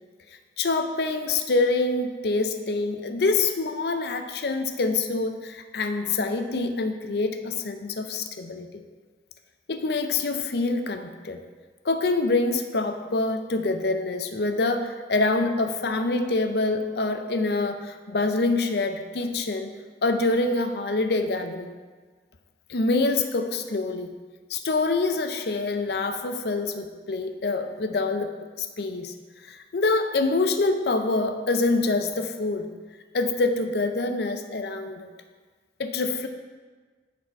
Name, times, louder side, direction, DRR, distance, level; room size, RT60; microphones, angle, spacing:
voice 1, 0.6-8.8 9.7-11.4 11.8-19.7 20.0-21.7 22.7-24.1 24.5-28.3 28.6-29.1 29.5-32.7 33.1-35.1 35.8-36.3, left 3 dB, 65° left, 7 dB, 0.5 m, -26 dB
8.7 x 4.3 x 4.6 m, 1.4 s
head